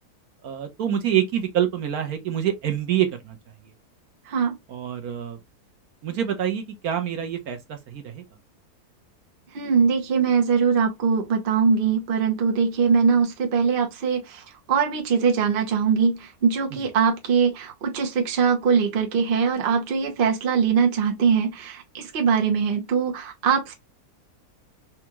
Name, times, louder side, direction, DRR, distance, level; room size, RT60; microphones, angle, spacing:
voice 1, 0.4-3.4 4.7-5.4 6.0-8.2, right 10 dB, 70° right, 1.2 m, -26 dB
voice 2, 9.5-23.7, right 6 dB, 45° right, 0.9 m, -22 dB
4.3 x 2.4 x 2.9 m
omnidirectional pair, 1.7 m